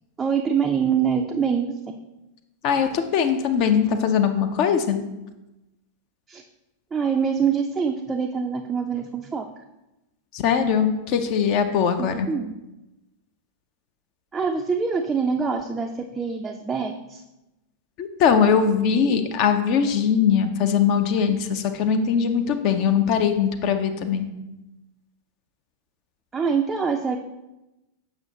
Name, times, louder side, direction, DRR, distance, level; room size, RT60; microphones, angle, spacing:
voice 1, 0.2-1.7 6.3-6.4 6.9-9.5 12.0-12.5 14.3-17.2 26.3-27.2, right 6 dB, 15° right, 2 dB, 0.4 m, -24 dB
voice 2, 2.6-5.0 10.3-12.3 18.0-24.3, left 7 dB, 40° left, 7 dB, 0.6 m, -21 dB
6.9 x 6.0 x 2.8 m, 0.98 s
figure-of-eight pair, 90°, 0 cm